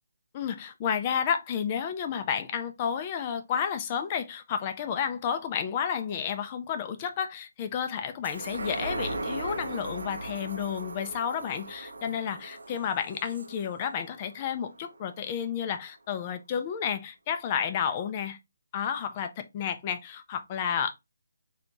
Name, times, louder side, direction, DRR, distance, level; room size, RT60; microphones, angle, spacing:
voice 1, 0.3-18.4 18.7-20.9, left 8 dB, 20° left, 0.5 m, -31 dB
sound 1, 8.2-15.0 15.4-15.5, right 2 dB, 85° right, 0.7 m, -38 dB
3.9 x 2.8 x 3.5 m
hypercardioid pair, 170°, 0 cm